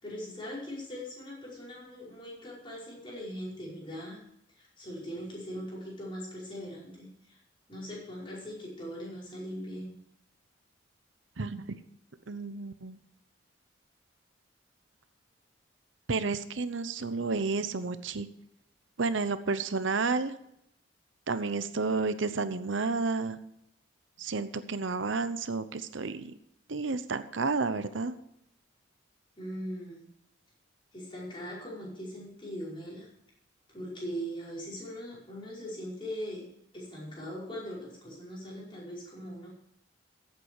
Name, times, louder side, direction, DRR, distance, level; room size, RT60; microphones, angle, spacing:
voice 1, 0.0-4.2 4.6-7.4 7.7-10.0 29.4-30.1 30.9-33.1 33.7-36.5 36.7-39.5, equal, 25° left, -5 dB, 5.3 m, -40 dB
voice 2, 11.4-11.8 12.3-13.0 16.1-18.3 19.0-20.3 21.3-23.4 24.2-26.3 26.7-28.2, right 4 dB, 80° right, 12 dB, 0.8 m, -31 dB
15.0 x 8.3 x 4.8 m, 0.78 s
head